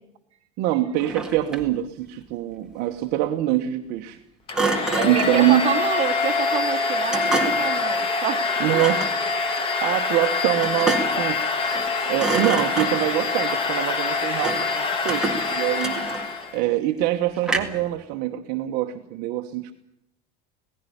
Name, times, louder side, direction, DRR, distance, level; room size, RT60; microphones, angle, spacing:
voice 1, 0.6-4.2 5.0-5.6 8.6-9.0 9.8-11.4 11.7-16.0 16.5-19.7, right 14 dB, 50° right, 4 dB, 1.2 m, -24 dB
Thump thud, 1.0-1.8 4.5-5.4 7.1-7.8 8.7-9.2 10.6-11.3 11.6-11.9 12.2-13.2 14.4-14.8 15.1-16.4 17.4-17.9, right 3 dB, 5° right, 1.8 m, -28 dB
Domestic sounds home sounds, 4.5-16.6, left 4 dB, 25° left, 1.7 m, -25 dB
voice 2, 5.0-8.9, right 9 dB, 30° right, 2 dB, 2.2 m, -28 dB
18.0 x 16.0 x 10.0 m, 0.85 s
cardioid pair, 160°, 20 cm